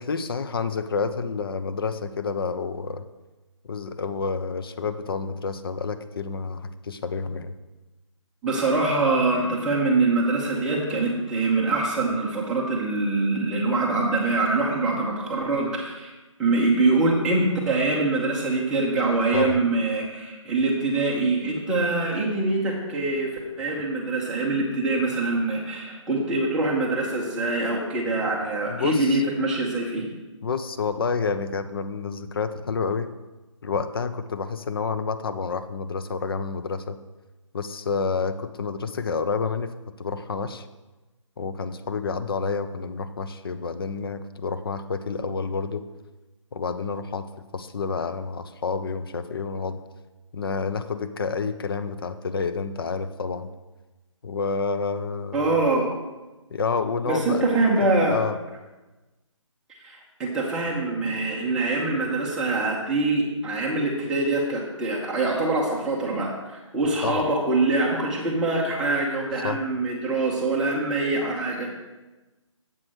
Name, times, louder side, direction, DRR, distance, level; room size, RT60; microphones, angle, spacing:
voice 1, 0.0-3.0 3.6-7.5 19.3-19.6 28.7-29.2 30.4-33.1 33.6-37.0 37.5-40.7 41.4-45.9 46.5-47.3 47.5-49.8 50.3-53.5 54.2-55.6 56.5-57.4 58.1-58.3 67.0-67.2 69.4-69.6, left 5 dB, 45° left, 11 dB, 0.5 m, -29 dB
voice 2, 8.4-16.1 16.4-30.1 55.3-55.9 57.1-58.2 59.8-71.7, right 2 dB, 5° right, -5 dB, 0.7 m, -24 dB
7.6 x 4.8 x 6.1 m, 1.1 s
hypercardioid pair, 165°, 17 cm